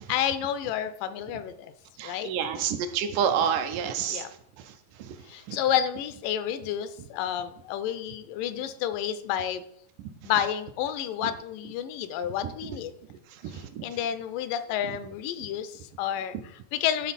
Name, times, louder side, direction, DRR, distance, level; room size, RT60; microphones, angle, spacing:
voice 1, 0.1-1.7 2.0-2.3 4.1-4.3 5.3-9.6 10.2-12.9 13.5-17.1, left 10 dB, 85° left, 11 dB, 2.2 m, -30 dB
voice 2, 2.0-4.3 5.0-5.2 5.5-5.6 13.4-13.8, right 8 dB, 80° right, 8 dB, 2.1 m, -28 dB
11.0 x 3.8 x 4.1 m, 0.67 s
omnidirectional pair, 3.8 m